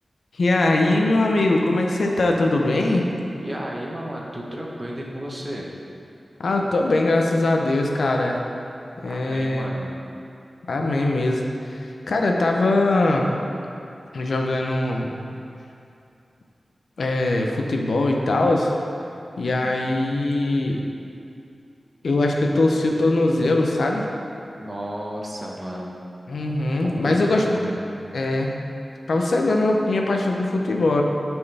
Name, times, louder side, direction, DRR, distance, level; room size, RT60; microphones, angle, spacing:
voice 1, 0.4-3.1 6.4-8.4 9.0-9.7 10.7-13.3 14.1-15.1 17.0-18.7 19.4-20.8 22.0-24.0 26.3-27.6 28.1-28.5 29.1-31.0, left 2 dB, 90° left, 1 dB, 0.6 m, -21 dB
voice 2, 3.4-5.7 9.1-9.9 19.6-19.9 24.6-26.0 26.8-27.8, equal, 30° right, -2 dB, 1.0 m, -33 dB
8.4 x 4.5 x 3.4 m, 2.6 s
wide cardioid pair, 75°, 0 cm